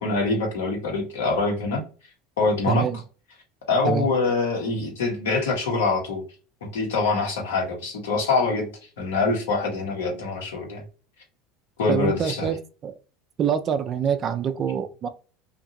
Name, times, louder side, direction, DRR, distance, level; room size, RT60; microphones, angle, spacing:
voice 1, 0.0-1.8 2.4-2.9 3.7-6.2 6.6-8.7 9.0-10.8 11.8-12.5, left 3 dB, 80° left, 1.1 m, -24 dB
voice 2, 2.7-3.0 3.8-4.1 11.9-13.0 13.4-15.1, right 8 dB, 45° right, 0.4 m, -25 dB
2.7 x 2.5 x 2.6 m
hypercardioid pair, 85°, 0 cm